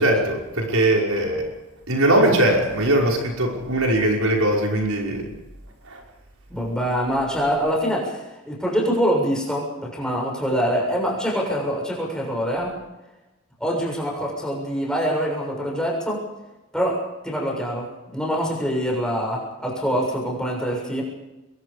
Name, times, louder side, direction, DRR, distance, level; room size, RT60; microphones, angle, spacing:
voice 1, 0.0-1.5 1.9-5.3 5.9-6.0, right 1 dB, 80° right, 0 dB, 5.8 m, -20 dB
voice 2, 6.5-12.8 13.6-16.2 16.7-21.0, equal, 5° left, -2 dB, 6.9 m, -25 dB
27.0 x 23.0 x 5.3 m, 1.0 s
head